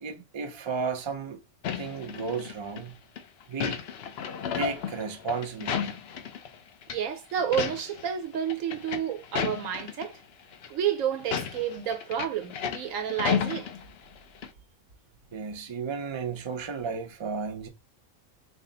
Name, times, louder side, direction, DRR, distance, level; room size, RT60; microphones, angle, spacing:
voice 1, 0.0-1.4 1.8-3.0 3.5-3.8 4.5-6.0 15.3-17.7, right 5 dB, 40° right, 0.4 m, -33 dB
sound 1, 1.6-2.8 3.2-6.6 6.8-7.0 7.4-8.1 8.3-10.1 10.5-10.7 11.2-14.2 14.4-14.5, left 8 dB, 60° left, 0.7 m, -33 dB
voice 2, 6.9-10.2 10.7-13.7, right 9 dB, 75° right, 1.2 m, -30 dB
4.1 x 2.0 x 3.9 m
omnidirectional pair, 1.4 m